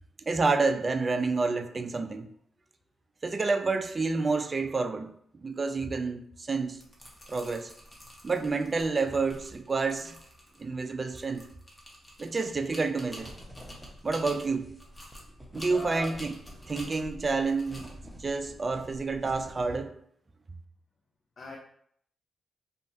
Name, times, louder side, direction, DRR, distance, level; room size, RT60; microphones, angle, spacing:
voice 1, 0.3-2.3 3.2-5.1 5.4-6.8 7.3-7.7 8.2-10.2 10.6-11.5 12.2-13.3 14.0-14.7 15.5-16.4 16.7-17.9 18.2-19.9, right 4 dB, 40° right, 0.3 m, -29 dB
sound 1, 6.6-19.4, equal, 25° left, 1.0 m, -50 dB
sound 2, 13.1-19.7, equal, 5° right, 0.8 m, -49 dB
voice 2, 15.7-16.2 21.4-21.6, left 2 dB, 55° left, 0.5 m, -38 dB
2.7 x 2.2 x 2.7 m
supercardioid pair, 45°, 0 cm